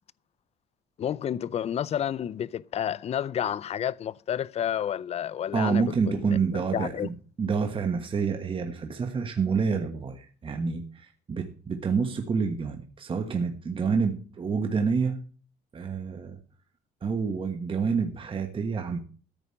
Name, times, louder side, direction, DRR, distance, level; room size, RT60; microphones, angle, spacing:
voice 1, 1.0-7.1, left 9 dB, 40° left, 0.5 m, -30 dB
voice 2, 5.5-15.2 15.7-16.4 17.0-19.0, right 5 dB, 30° right, 1.3 m, -28 dB
14.0 x 5.1 x 8.7 m
cardioid pair, 110°, 17 cm